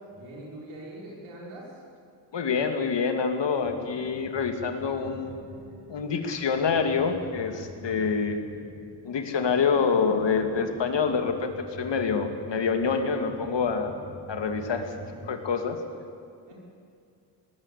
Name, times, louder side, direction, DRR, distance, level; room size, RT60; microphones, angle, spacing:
voice 1, 0.1-1.8 16.5-16.6, right 1 dB, 90° right, -3 dB, 5.6 m, -43 dB
voice 2, 2.3-5.5 5.9-8.4 9.0-13.9 14.3-14.9 15.3-15.8, left 5 dB, 60° left, 6 dB, 2.5 m, -26 dB
sound 1, 3.6-15.3, right 1 dB, 55° right, 5.8 m, -46 dB
20.0 x 17.0 x 8.5 m, 2.4 s
supercardioid pair, 50°, 48 cm